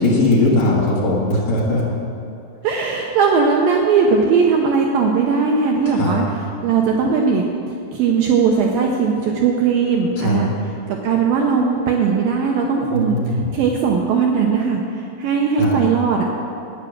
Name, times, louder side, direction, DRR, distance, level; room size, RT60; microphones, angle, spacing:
voice 1, 0.0-1.9 5.9-6.2 10.2-10.4 12.9-13.6 15.6-15.8, left 2 dB, 60° left, -4 dB, 2.0 m, -19 dB
voice 2, 2.6-6.2 6.6-7.4 7.9-10.5 10.9-16.2, right 5 dB, 85° right, 0 dB, 2.0 m, -18 dB
13.0 x 9.7 x 6.4 m, 2.7 s
omnidirectional pair, 5.2 m